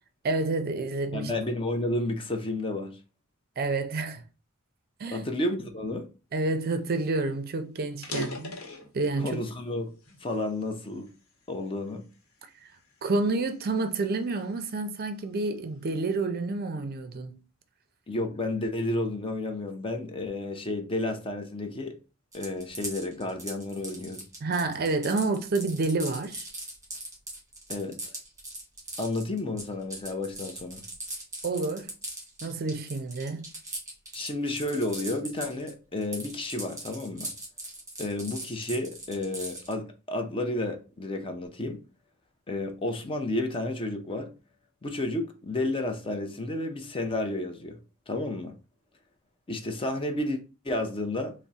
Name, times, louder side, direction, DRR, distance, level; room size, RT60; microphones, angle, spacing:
voice 1, 0.2-1.3 3.6-4.2 5.0-5.3 6.3-8.5 8.9-9.4 12.6-12.7 13.0-17.4 24.4-26.5 31.4-31.9 32.4-33.5, right 3 dB, 45° right, 0.5 m, -29 dB
voice 2, 1.1-3.0 5.1-6.1 9.2-9.9 10.2-11.1 11.5-12.0 18.1-22.0 22.3-24.2 27.7-28.0 29.0-30.8 34.1-37.3 38.0-41.8 42.5-44.3 44.8-47.8 48.1-48.6 49.5-50.4 50.6-51.3, left 2 dB, 25° left, 0.5 m, -31 dB
sound 1, 6.8-6.9 7.2-7.4 7.9-9.5 10.0-11.3 11.9-12.2 12.8-14.8, left 1 dB, 80° left, 1.0 m, -40 dB
sound 2, 22.3-35.7 36.0-39.7, right 1 dB, 15° right, 1.4 m, -39 dB
3.5 x 2.1 x 4.0 m
head